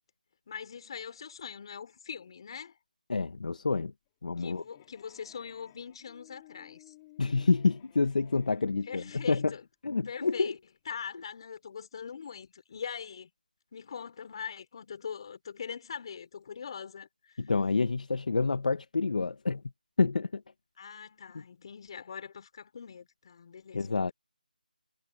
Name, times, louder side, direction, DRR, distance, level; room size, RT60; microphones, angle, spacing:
voice 1, 0.5-2.8 4.4-6.9 8.9-9.6 10.0-10.6 10.9-13.3 13.7-17.4 20.8-24.1, left 7 dB, 35° left, 4.4 m, -42 dB
voice 2, 3.1-3.9 4.2-4.6 7.2-9.5 9.8-10.5 17.4-19.6 20.0-20.4 23.7-24.1, left 4 dB, 55° left, 1.5 m, -28 dB
sound 1, 4.1-9.6, left 19 dB, 15° left, 4.2 m, -57 dB
figure-of-eight pair, 170°, 5 cm